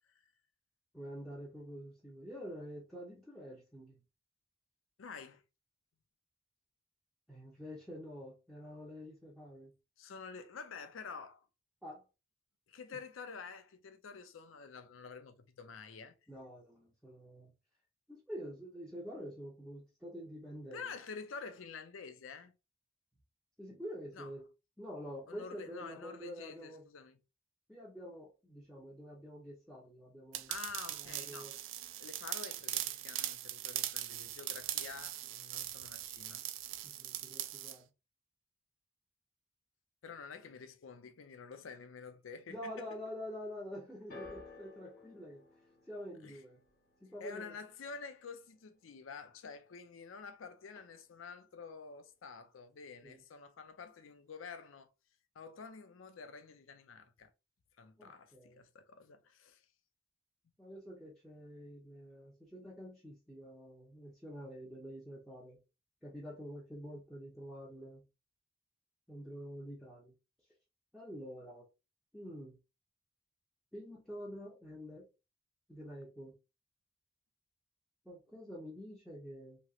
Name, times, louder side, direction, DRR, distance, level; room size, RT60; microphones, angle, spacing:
voice 1, 0.9-4.0 7.3-9.7 11.8-12.0 12.9-13.0 16.3-17.5 18.1-20.9 23.6-24.4 24.8-26.8 27.7-30.5 31.0-31.5 36.8-37.9 42.5-45.4 45.9-46.6 47.0-47.5 53.0-53.2 58.0-58.6 60.6-65.6 66.0-68.0 69.1-70.1 70.9-71.6 72.1-72.6 73.7-75.1 75.7-76.3 78.0-79.6, equal, ahead, 0.7 m, -47 dB
voice 2, 5.0-5.4 10.0-11.5 12.7-16.1 20.7-22.5 24.1-24.3 25.3-27.2 30.5-31.5 32.0-36.5 40.0-42.8 46.2-46.4 47.2-54.9 55.4-57.3 57.8-59.6, left 5 dB, 85° left, 0.5 m, -49 dB
sound 1, 30.3-37.8, right 13 dB, 80° right, 0.3 m, -40 dB
sound 2, 44.1-50.4 50.6-51.3 52.0-52.1, left 3 dB, 45° left, 1.0 m, -57 dB
2.9 x 2.9 x 2.4 m
head